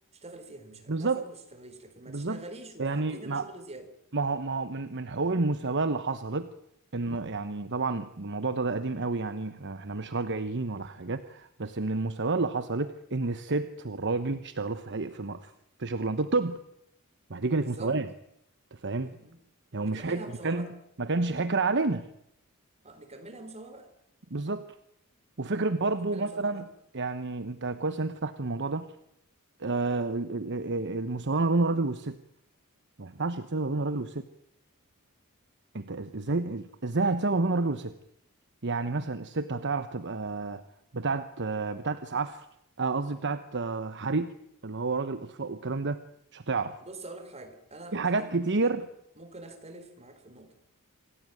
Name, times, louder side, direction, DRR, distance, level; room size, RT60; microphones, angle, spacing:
voice 1, 0.1-3.9 17.6-18.0 19.0-19.4 19.8-20.7 22.8-23.9 25.6-26.7 33.9-34.1 46.8-48.9 49.2-50.5, right 2 dB, 30° right, 8 dB, 4.0 m, -46 dB
voice 2, 0.9-1.2 2.1-2.4 2.8-3.4 4.1-6.5 6.9-15.5 15.8-16.6 17.3-18.1 18.7-19.1 19.7-20.7 21.0-22.1 24.3-24.6 25.4-26.6 26.9-28.9 29.6-32.2 33.0-34.2 35.7-37.9 38.6-40.6 40.9-42.5 42.8-44.4 44.6-46.0 46.3-46.8 47.9-48.8, right 3 dB, 55° right, 11 dB, 1.1 m, -30 dB
27.0 x 17.5 x 9.2 m, 0.77 s
head